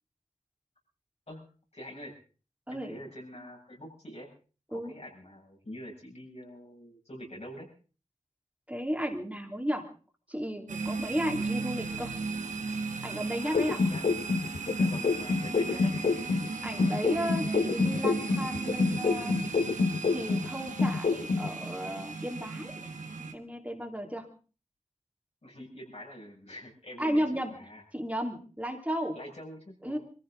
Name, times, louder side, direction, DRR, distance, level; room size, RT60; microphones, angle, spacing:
voice 1, 1.7-2.1 2.7-4.3 4.7-7.7 13.4-14.3 14.7-15.9 25.4-27.8 29.1-30.0, equal, 60° left, -1 dB, 7.7 m, -45 dB
voice 2, 2.7-3.0 4.7-4.9 8.7-9.8 10.3-12.1 13.0-13.8 15.7-15.9 16.6-19.3 20.1-22.8 23.2-24.3 27.0-27.5 27.9-29.2 29.8-30.0, equal, 10° right, 1 dB, 2.9 m, -34 dB
sound 1, 10.7-23.3, right 4 dB, 85° right, 1.6 m, -36 dB
sound 2, 13.5-16.5 16.8-20.5 20.8-21.5, left 4 dB, 80° left, 0.8 m, -27 dB
23.5 x 15.0 x 4.0 m, 0.37 s
wide cardioid pair, 50°, 13 cm